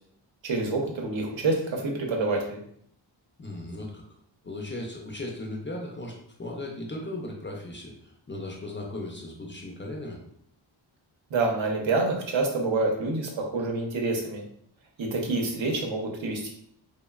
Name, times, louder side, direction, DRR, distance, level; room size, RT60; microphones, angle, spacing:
voice 1, 0.4-2.6 11.3-14.4 15.0-16.5, right 3 dB, 75° right, 1 dB, 0.7 m, -27 dB
voice 2, 3.4-4.1 4.4-10.2, left 2 dB, 30° left, -1 dB, 0.4 m, -37 dB
3.0 x 2.1 x 2.2 m, 0.66 s
wide cardioid pair, 135°, 46 cm